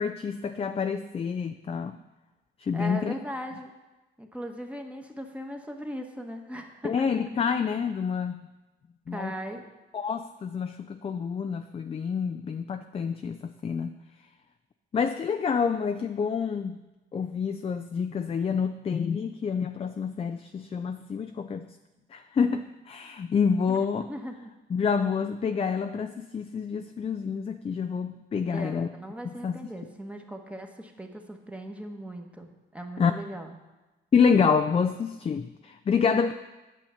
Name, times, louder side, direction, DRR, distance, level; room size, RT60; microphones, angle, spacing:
voice 1, 0.0-2.0 2.6-3.1 6.8-8.5 9.1-9.3 9.9-13.9 14.9-16.8 17.1-21.7 22.1-24.1 24.7-28.9 29.2-29.6 33.0-33.1 34.1-36.3, left 6 dB, 30° left, 8 dB, 0.4 m, -27 dB
voice 2, 2.7-3.7 4.2-7.1 9.1-9.6 23.7-23.8 24.1-24.5 28.5-33.5, equal, 5° right, 3 dB, 1.2 m, -38 dB
9.0 x 6.8 x 5.7 m, 1.1 s
cardioid pair, 90°, 20 cm